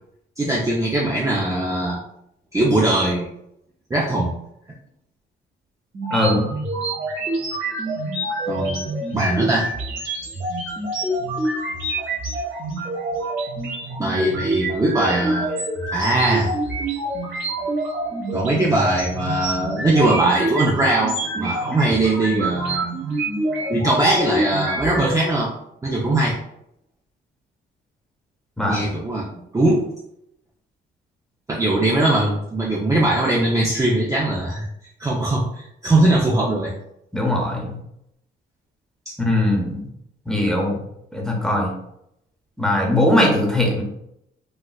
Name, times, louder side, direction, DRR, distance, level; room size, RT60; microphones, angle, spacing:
voice 1, 0.4-2.0 2.5-3.3 3.9-4.4 8.5-9.7 14.0-15.5 15.9-16.5 18.3-22.9 23.7-25.5 25.8-26.4 28.6-29.3 29.5-29.8 31.5-34.7 35.0-36.7, right 2 dB, 15° right, -4 dB, 0.5 m, -20 dB
sound 1, 5.9-25.2, right 1 dB, 75° right, 1.4 m, -26 dB
voice 2, 6.1-6.5 28.6-28.8 37.1-37.8 39.2-39.9 40.3-40.8 41.1-41.7 42.6-43.8, left 1 dB, 5° left, -1 dB, 0.9 m, -20 dB
4.2 x 2.3 x 2.3 m, 0.78 s
cardioid pair, 90°, 20 cm